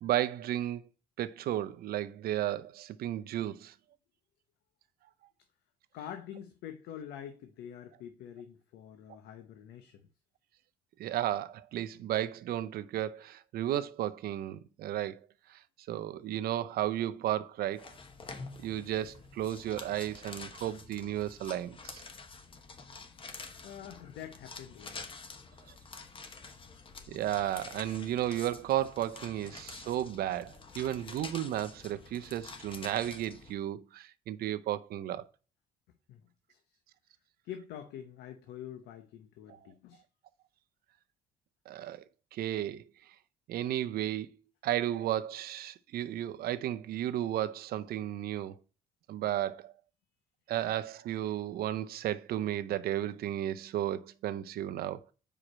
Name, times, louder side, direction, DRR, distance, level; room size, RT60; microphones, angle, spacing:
voice 1, 0.0-0.8 1.2-3.7 9.1-9.2 11.0-15.2 15.5-15.6 15.9-17.9 18.6-22.0 27.1-35.3 39.5-39.6 41.7-42.0 42.3-42.8 43.5-44.3 44.6-48.6 49.1-49.7 50.5-55.1, right 12 dB, 65° right, 0.6 m, -33 dB
voice 2, 5.9-10.0 23.6-25.1 36.1-36.2 36.5-36.6 37.4-40.0, left 10 dB, 85° left, 0.8 m, -46 dB
sound 1, 17.8-33.5, left 4 dB, 30° left, 1.1 m, -48 dB
5.0 x 4.9 x 4.3 m
cardioid pair, 110°, 17 cm